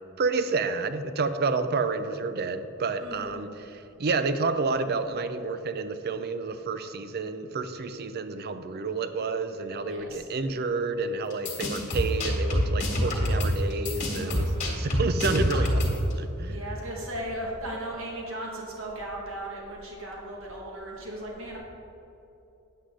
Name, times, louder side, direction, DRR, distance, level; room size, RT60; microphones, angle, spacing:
voice 1, 0.2-16.6, right 4 dB, 50° right, 10 dB, 0.5 m, -30 dB
voice 2, 3.0-3.4 9.8-10.3 14.2-14.7 16.5-21.6, right 1 dB, 70° right, -2 dB, 1.8 m, -37 dB
sound 1, 11.3-16.1, equal, 35° left, 2.0 m, -26 dB
9.7 x 8.2 x 3.8 m, 3.0 s
head